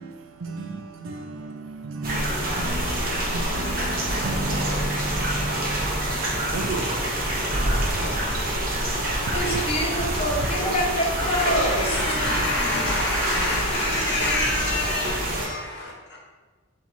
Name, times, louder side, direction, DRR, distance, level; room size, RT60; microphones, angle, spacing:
voice 1, 0.0-7.8 14.4-14.5, right 2 dB, 65° right, 0.5 m, -34 dB
sound 1, 2.0-15.5, right 1 dB, 45° right, 0.8 m, -26 dB
voice 2, 9.2-15.3, left 1 dB, 30° left, 0.7 m, -28 dB
voice 3, 11.9-16.2, left 2 dB, 50° left, 1.0 m, -28 dB
3.8 x 2.8 x 4.4 m
head